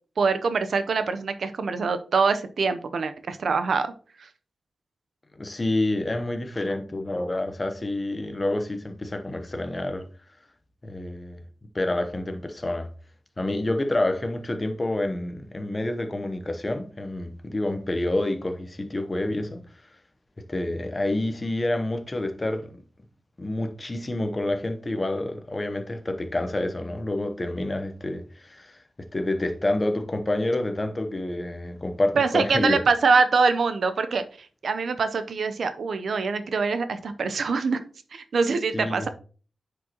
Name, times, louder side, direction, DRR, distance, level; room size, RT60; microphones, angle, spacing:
voice 1, 0.2-3.9 4.2-4.3 32.1-34.2 34.6-37.8 38.1-39.1, right 4 dB, 70° right, 0.7 m, -24 dB
voice 2, 5.4-10.0 10.8-11.4 11.7-12.9 13.4-19.6 20.5-22.7 23.4-32.8 38.7-39.1, left 1 dB, 25° left, 0.9 m, -28 dB
9.4 x 5.1 x 2.9 m
wide cardioid pair, 115°, 0 cm